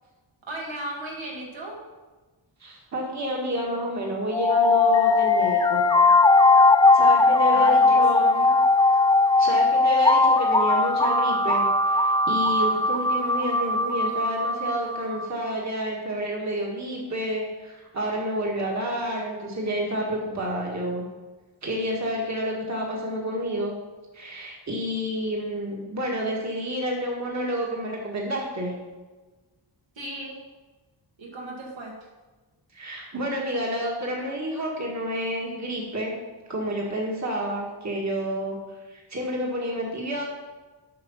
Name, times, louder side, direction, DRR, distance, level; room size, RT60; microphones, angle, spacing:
voice 1, 0.5-1.8 7.5-8.6 30.0-30.4 31.2-32.1, right 1 dB, 75° right, -2 dB, 2.0 m, -36 dB
voice 2, 2.6-5.8 6.9-8.3 9.4-21.0 21.6-23.7 24.1-28.7 32.7-36.1 36.5-38.6 38.9-40.2, equal, 35° right, -2 dB, 1.8 m, -29 dB
sound 1, 4.3-15.3, left 3 dB, 10° left, 0.3 m, -19 dB
7.7 x 5.8 x 5.6 m, 1.3 s
wide cardioid pair, 130°, 46 cm